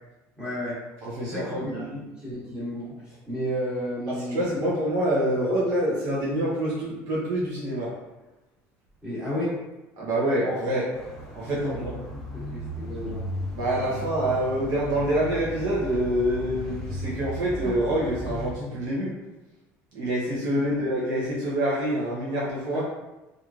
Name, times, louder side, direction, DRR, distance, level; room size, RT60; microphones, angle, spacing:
voice 1, 0.4-0.8 1.2-4.7 9.0-9.5 11.5-13.3 20.5-20.8 22.7-22.8, equal, 15° right, -10 dB, 1.2 m, -33 dB
voice 2, 1.0-2.0 4.1-8.0 10.0-10.9 11.3-11.9 13.5-19.1 19.9-22.8, right 1 dB, 65° right, -6 dB, 0.7 m, -26 dB
sound 1, 10.9-18.5, equal, 10° left, 0.7 m, -36 dB
3.0 x 2.5 x 2.4 m, 1.0 s
cardioid pair, 130°, 6 cm